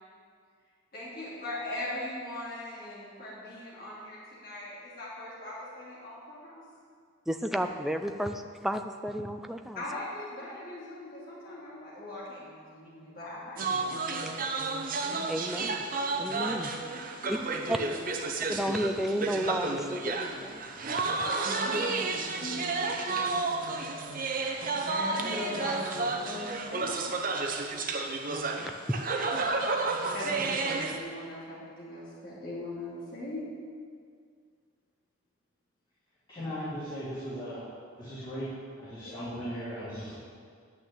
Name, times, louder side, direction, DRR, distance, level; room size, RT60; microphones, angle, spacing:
voice 1, 0.9-6.6 9.7-14.4 16.8-16.9 17.2-17.4 17.8-17.9 21.4-21.8 22.4-22.9 24.0-24.5 24.8-26.9 30.1-33.4 39.0-39.1, left 1 dB, 45° left, -8 dB, 2.9 m, -40 dB
voice 2, 7.3-9.8 15.3-15.8 16.2-16.7 17.3-17.4 17.7-17.8 18.5-20.6 28.3-28.7, equal, ahead, 6 dB, 0.4 m, -32 dB
sound 1, 13.6-31.0, right 3 dB, 40° right, 0.9 m, -31 dB
voice 3, 36.3-37.6 38.0-38.5 38.8-40.1, equal, 20° left, -12 dB, 2.8 m, -37 dB
10.5 x 6.3 x 8.7 m, 2.1 s
head